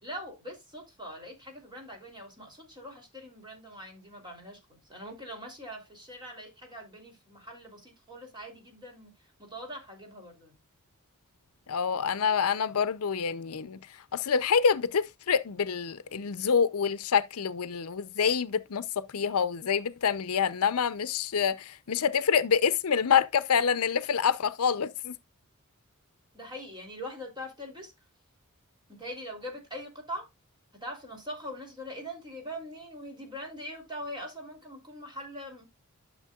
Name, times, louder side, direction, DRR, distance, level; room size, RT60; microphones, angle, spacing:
voice 1, 0.0-9.1 9.4-10.5 26.3-27.9 28.9-30.3 30.8-35.7, equal, 20° right, 3.2 m, -42 dB
voice 2, 11.7-13.8 14.1-25.2, left 6 dB, 75° left, 0.6 m, -27 dB
11.0 x 6.6 x 2.4 m
head